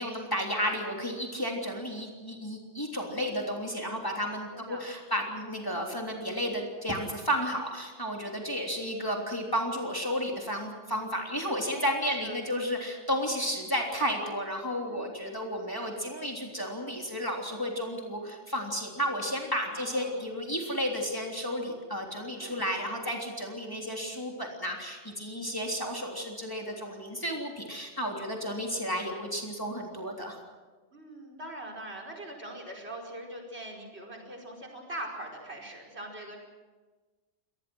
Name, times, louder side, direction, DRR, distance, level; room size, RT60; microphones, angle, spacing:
voice 1, 0.0-30.4, equal, 15° left, 0 dB, 3.4 m, -32 dB
voice 2, 4.5-4.8 12.2-12.4 14.9-15.1 19.7-20.2 22.4-22.6 30.9-36.4, right 1 dB, 60° right, 0 dB, 5.4 m, -42 dB
27.0 x 19.5 x 6.3 m, 1.3 s
omnidirectional pair, 1.2 m